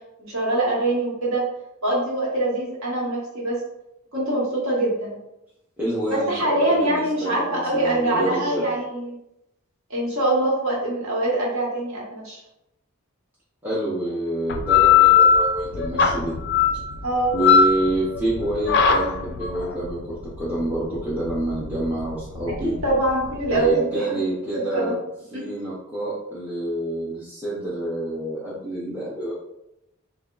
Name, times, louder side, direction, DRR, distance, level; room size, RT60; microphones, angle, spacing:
voice 1, 0.2-1.5 1.8-3.6 4.1-5.2 6.1-9.2 9.9-12.4 17.0-17.3 22.8-24.2 24.5-25.0 25.3-25.4, right 1 dB, 60° right, -5 dB, 1.3 m, -24 dB
voice 2, 5.8-8.7 13.6-16.3 17.3-22.7 23.5-25.0 25.3-29.3, right 1 dB, 10° right, -9 dB, 0.7 m, -27 dB
sound 1, 14.5-23.7, left 7 dB, 50° left, 0.3 m, -20 dB
3.4 x 2.3 x 3.8 m, 0.85 s
head